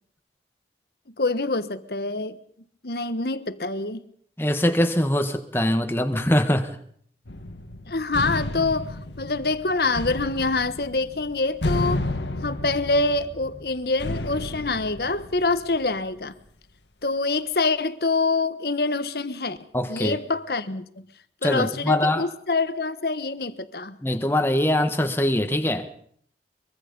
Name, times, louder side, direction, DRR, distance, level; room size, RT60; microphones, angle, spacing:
voice 1, 1.2-2.4 2.8-4.0 7.9-12.1 12.4-16.3 17.0-19.6 19.9-21.0 21.4-24.0, left 3 dB, 60° left, 1.2 m, -25 dB
voice 2, 4.4-6.8 19.7-20.2 21.4-22.2 24.0-25.9, left 1 dB, 15° left, 1.4 m, -22 dB
sound 1, 7.3-15.9, left 1 dB, 90° left, 1.7 m, -32 dB
24.0 x 22.5 x 5.4 m
head